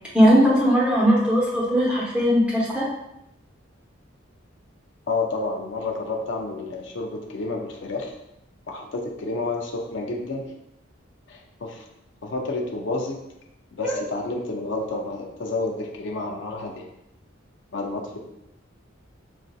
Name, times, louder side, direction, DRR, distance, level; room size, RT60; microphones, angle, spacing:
voice 1, 0.1-2.9 13.8-14.0, equal, 5° right, -6 dB, 1.0 m, -19 dB
voice 2, 5.1-8.1 8.7-10.4 11.3-11.8 12.2-13.2 13.7-16.9 17.7-18.2, left 3 dB, 65° left, 1 dB, 0.5 m, -30 dB
5.6 x 2.6 x 2.4 m, 0.85 s
head